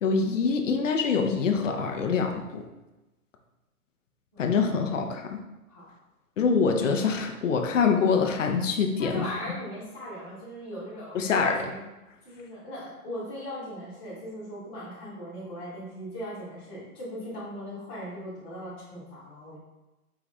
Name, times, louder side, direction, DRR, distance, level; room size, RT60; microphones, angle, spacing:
voice 1, 0.0-2.6 4.4-5.4 6.4-9.2 11.1-11.6, left 5 dB, 55° left, 4 dB, 0.7 m, -25 dB
voice 2, 9.0-11.8 12.2-19.6, equal, 10° left, -13 dB, 0.4 m, -39 dB
4.8 x 2.3 x 4.2 m, 1.0 s
hypercardioid pair, 135°, 45 cm